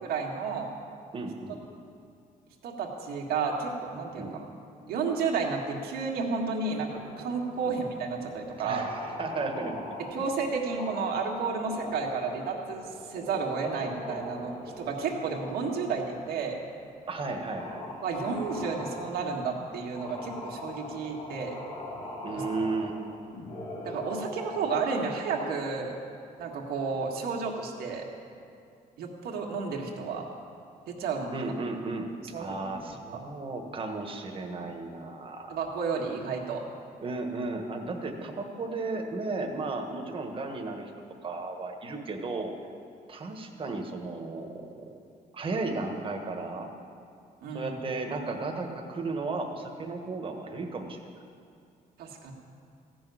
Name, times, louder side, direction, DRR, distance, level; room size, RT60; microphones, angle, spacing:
voice 1, 0.0-0.7 2.6-4.3 4.9-8.9 10.1-16.6 18.0-21.6 22.3-22.4 23.8-26.0 26.4-28.0 29.0-30.3 30.9-31.5 32.3-32.7 35.5-36.6 47.4-47.8 52.0-52.3, right 5 dB, 85° right, 0 dB, 1.9 m, -32 dB
voice 2, 1.1-1.6 4.2-4.4 8.6-9.8 17.1-17.9 22.2-23.0 31.3-32.1 32.3-35.6 37.0-40.9 41.2-42.5 43.1-45.0 45.3-46.7 47.5-51.0, right 3 dB, 35° right, 3 dB, 1.5 m, -34 dB
sound 1, 6.6-8.1 8.7-10.3 10.8-11.2 11.5-16.5 17.0-17.1 17.6-19.3 19.9-24.8, left 1 dB, 80° left, 2.7 m, -41 dB
15.0 x 6.3 x 9.4 m, 2.4 s
cardioid pair, 120°, 16 cm